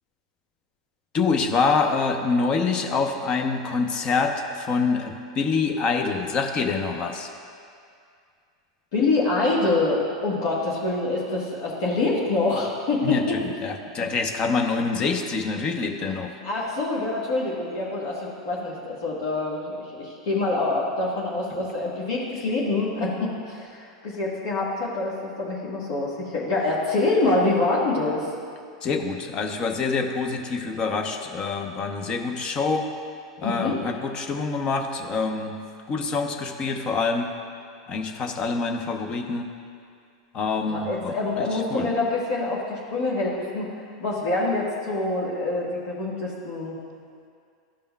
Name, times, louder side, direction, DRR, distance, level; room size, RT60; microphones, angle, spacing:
voice 1, 1.1-7.3 13.0-16.3 28.8-32.8 33.4-35.5 35.9-37.3 37.9-39.5 40.3-41.9, left 4 dB, 35° left, 4 dB, 0.7 m, -26 dB
voice 2, 8.9-13.4 16.4-28.3 33.4-33.8 40.7-43.7 44.0-46.8, left 2 dB, 65° left, -6 dB, 1.4 m, -25 dB
12.5 x 5.3 x 2.3 m, 2.3 s
hypercardioid pair, 95°, 2 cm